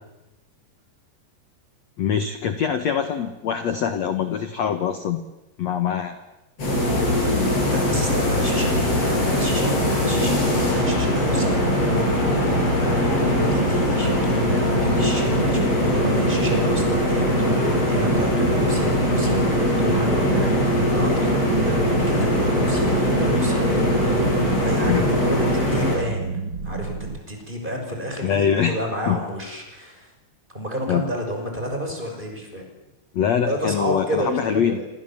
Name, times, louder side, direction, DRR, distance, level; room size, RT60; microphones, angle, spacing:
voice 1, 2.0-5.2 5.6-6.2 24.9-25.1 28.2-28.8 29.1-29.2 30.9-31.0 33.1-34.8, left 8 dB, 65° left, 9 dB, 1.7 m, -23 dB
sound 1, 6.6-26.0, left 1 dB, 35° left, 9.1 m, -21 dB
voice 2, 7.7-23.7 24.5-26.9 27.3-30.1 30.5-32.7 33.5-34.9, equal, 10° right, 2 dB, 5.8 m, -31 dB
sound 2, 11.3-27.2, right 4 dB, 40° right, 2.3 m, -30 dB
29.0 x 26.0 x 7.4 m, 0.98 s
omnidirectional pair, 5.0 m